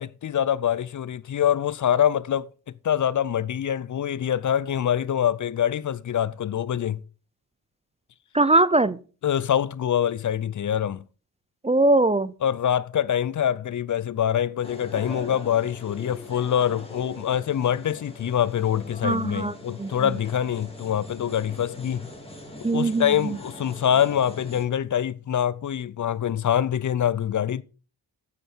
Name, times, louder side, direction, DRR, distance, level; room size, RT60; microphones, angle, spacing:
voice 1, 0.0-2.5 2.8-7.0 9.2-11.0 12.4-22.0 22.7-27.6, left 9 dB, 50° left, 0.5 m, -25 dB
voice 2, 8.3-9.0 11.6-12.3 19.0-20.1 22.6-23.4, right 2 dB, 15° right, 0.5 m, -21 dB
sound 1, 14.6-24.7, left 1 dB, 15° left, 2.7 m, -42 dB
9.3 x 8.5 x 4.4 m
cardioid pair, 55°, 38 cm